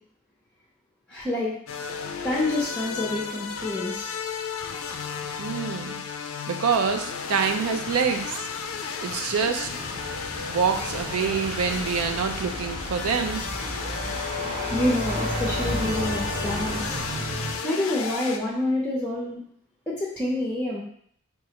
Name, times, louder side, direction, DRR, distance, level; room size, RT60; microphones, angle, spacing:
voice 1, 1.1-1.5 2.2-4.1 9.4-9.5 14.7-17.0 17.6-19.4 19.9-20.8, left 1 dB, 5° left, -4 dB, 0.5 m, -27 dB
sound 1, 1.7-18.4, left 6 dB, 65° left, 0.4 m, -33 dB
voice 2, 5.4-5.9 6.5-8.4 9.0-9.7 10.4-13.4, right 6 dB, 75° right, 6 dB, 0.4 m, -26 dB
sound 2, 9.6-17.6, right 1 dB, 35° right, 1.0 m, -33 dB
5.3 x 2.4 x 2.8 m, 0.65 s
head